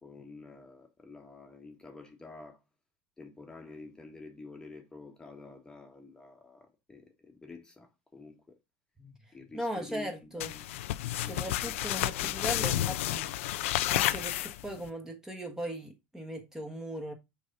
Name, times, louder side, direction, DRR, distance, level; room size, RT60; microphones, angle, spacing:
voice 1, 0.0-2.6 3.2-8.6 9.3-10.7 11.2-11.7, left 3 dB, 10° left, 1.5 m, -49 dB
voice 2, 9.5-10.5 11.1-13.3 13.9-17.1, equal, 5° right, 1.5 m, -38 dB
sound 1, 10.4-14.9, left 14 dB, 85° left, 0.6 m, -31 dB
6.3 x 4.1 x 5.3 m
supercardioid pair, 130°, 7 cm